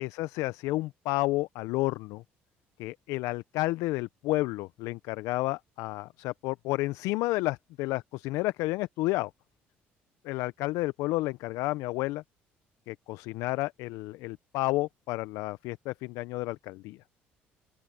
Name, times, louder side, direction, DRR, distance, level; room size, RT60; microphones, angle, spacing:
voice 1, 0.0-2.2 2.8-9.3 10.2-12.2 12.9-17.0, left 20 dB, 75° left, 0.7 m, -31 dB
open air
hypercardioid pair, 55°, 5 cm